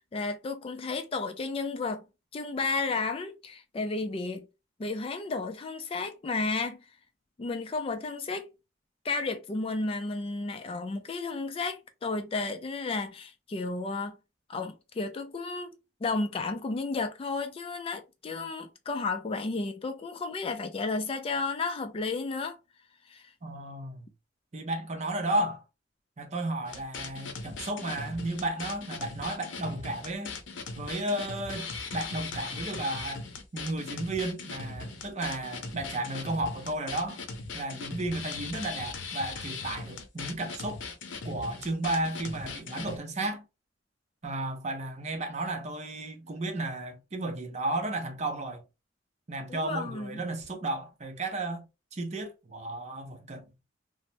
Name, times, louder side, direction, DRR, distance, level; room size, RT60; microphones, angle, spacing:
voice 1, 0.1-2.1 2.3-4.5 4.8-6.8 7.4-8.5 9.0-14.2 14.5-22.6 23.0-23.3 49.5-50.2, left 3 dB, 30° left, 0.3 m, -33 dB
voice 2, 23.4-24.1 24.5-25.6 26.2-30.4 30.8-33.3 33.5-37.2 37.5-40.8 41.2-43.5 44.2-48.6 49.3-51.7 51.9-53.4, right 2 dB, 40° right, 0.6 m, -33 dB
sound 1, 26.7-43.0, left 4 dB, 90° left, 0.6 m, -39 dB
3.1 x 2.0 x 2.6 m
head